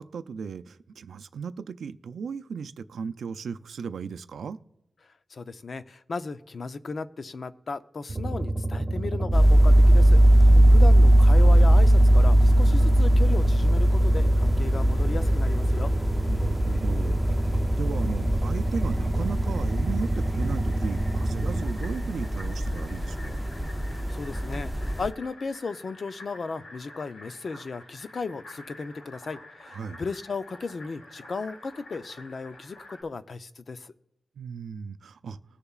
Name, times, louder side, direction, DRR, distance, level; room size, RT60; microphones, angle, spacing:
voice 1, 0.0-4.6 10.5-10.9 16.3-23.4 29.7-30.0 34.4-35.4, right 6 dB, 85° right, 0.4 m, -36 dB
voice 2, 5.3-15.9 24.1-33.9, left 4 dB, 50° left, 0.5 m, -35 dB
sound 1, 8.1-21.7, right 2 dB, 30° right, 2.2 m, -29 dB
sound 2, 9.3-25.1, right 1 dB, ahead, 0.6 m, -20 dB
Fill (with liquid), 15.0-33.0, left 2 dB, 80° left, 2.9 m, -50 dB
20.5 x 6.8 x 2.4 m
wide cardioid pair, 120°, 0 cm